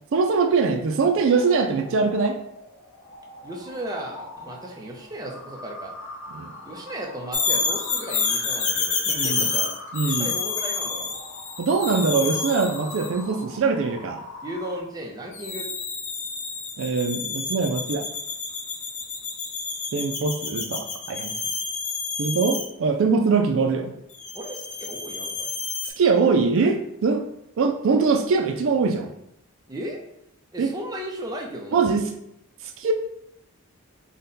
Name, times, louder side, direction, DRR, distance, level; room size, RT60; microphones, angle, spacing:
voice 1, 0.1-2.4 6.3-6.5 9.2-9.5 9.9-10.3 11.6-14.3 16.8-18.1 19.9-21.3 22.2-23.9 25.8-27.2 27.6-29.1 30.6-30.7 31.7-32.0 32.6-32.9, right 4 dB, 65° right, 5 dB, 0.4 m, -22 dB
sound 1, 1.0-14.8, left 2 dB, 90° left, 0.7 m, -42 dB
voice 2, 3.4-5.9 6.6-9.7 10.0-11.2 14.4-15.7 24.3-25.5 29.7-30.0 30.5-31.9, right 1 dB, 15° right, 0 dB, 0.5 m, -35 dB
sound 2, 7.3-13.2 15.3-22.7 24.2-25.9, left 5 dB, 35° left, 0.5 m, -29 dB
3.9 x 2.1 x 3.9 m, 0.77 s
head